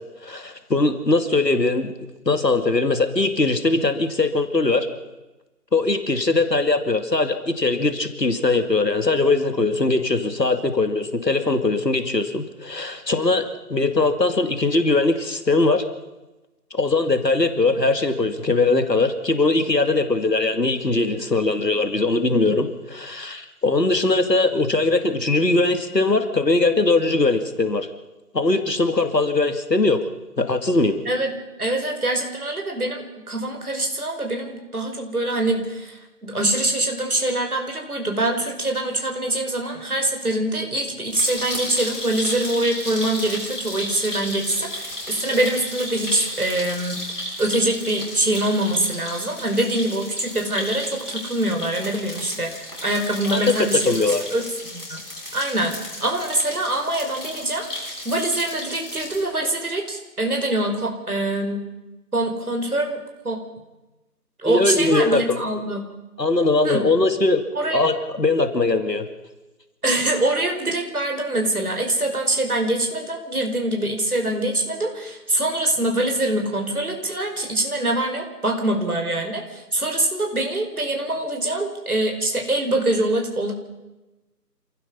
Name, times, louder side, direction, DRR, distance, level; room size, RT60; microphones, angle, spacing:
voice 1, 0.2-1.9 2.3-4.9 5.7-15.9 16.7-27.9 28.3-30.0 30.4-31.0 53.3-54.2 64.4-65.4 66.2-67.4 67.7-69.1, left 3 dB, 90° left, 8 dB, 2.7 m, -21 dB
voice 2, 31.6-47.0 47.4-53.8 54.3-55.0 55.3-57.7 58.1-61.6 62.1-63.4 64.4-65.8 66.6-66.9 67.6-67.9 69.8-83.5, right 1 dB, 60° right, 3 dB, 5.1 m, -24 dB
sound 1, 41.1-59.2, left 1 dB, 5° left, 5.0 m, -33 dB
28.5 x 16.5 x 5.6 m, 1.0 s
figure-of-eight pair, 170°, 48 cm